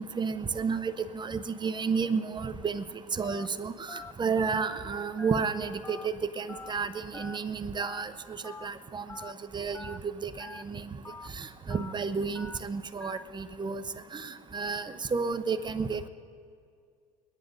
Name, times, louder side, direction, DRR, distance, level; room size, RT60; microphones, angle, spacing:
voice 1, 0.0-2.8 3.1-8.1 8.6-9.9 10.2-10.8 11.4-13.8 14.1-16.1, right 5 dB, 25° right, 10 dB, 0.9 m, -32 dB
Telephone, 3.2-3.5 3.9-4.1 4.5-4.8 5.2-5.4 5.8-6.1 6.5-6.7 7.1-7.4 7.8-8.0 8.4-8.7 9.1-9.3 9.7-10.0 10.4-10.6 11.0-11.3 11.7-11.9 12.4-12.6 13.0-13.2, left 3 dB, 10° left, 0.4 m, -44 dB
22.5 x 10.5 x 4.0 m, 2.3 s
hypercardioid pair, 80°, 18 cm